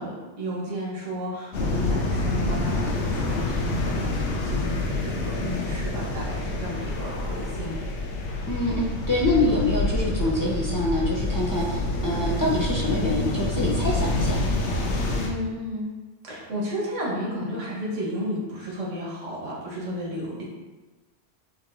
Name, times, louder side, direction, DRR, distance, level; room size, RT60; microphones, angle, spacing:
voice 1, 0.0-7.8 15.1-15.9 16.2-20.4, equal, 90° right, -4 dB, 1.5 m, -33 dB
sound 1, 1.5-15.3, left 2 dB, 75° left, 1.0 m, -27 dB
voice 2, 8.5-14.4, left 1 dB, 25° left, -5 dB, 0.5 m, -25 dB
6.4 x 3.1 x 2.6 m, 1.2 s
omnidirectional pair, 1.2 m